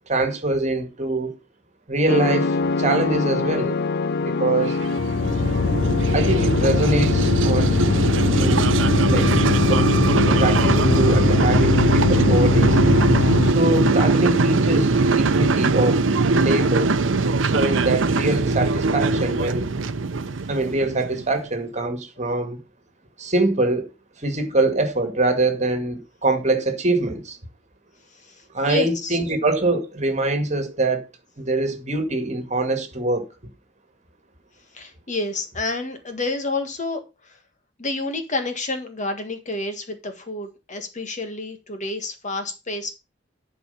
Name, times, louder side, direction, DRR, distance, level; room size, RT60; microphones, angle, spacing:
voice 1, 0.1-1.3 1.9-3.8 4.2-4.8 6.1-7.9 8.3-8.7 9.1-9.9 10.3-12.8 13.4-16.0 16.3-16.9 17.4-19.7 20.5-22.6 23.2-23.9 24.2-27.4 28.5-31.1 31.4-33.3, right 2 dB, 40° right, 2.0 m, -24 dB
sound 1, 2.1-13.5, left 4 dB, 55° left, 0.5 m, -21 dB
sound 2, 4.6-21.3, right 3 dB, 85° right, 0.7 m, -21 dB
voice 2, 28.7-29.2 34.7-37.4 37.8-42.9, left 2 dB, 40° left, 1.7 m, -29 dB
11.5 x 4.8 x 5.6 m
head